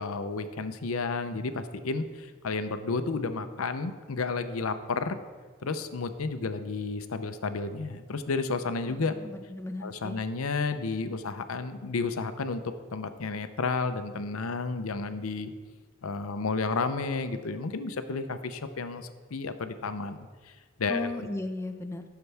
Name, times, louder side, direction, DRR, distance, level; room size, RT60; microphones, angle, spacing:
voice 1, 0.0-5.2 5.6-9.1 9.8-12.6 12.9-15.5 16.0-20.2 20.5-21.2, left 4 dB, 85° left, 9 dB, 0.7 m, -32 dB
voice 2, 8.9-10.2 20.9-22.0, left 2 dB, 15° left, 6 dB, 0.6 m, -36 dB
15.0 x 6.8 x 3.4 m, 1.5 s
head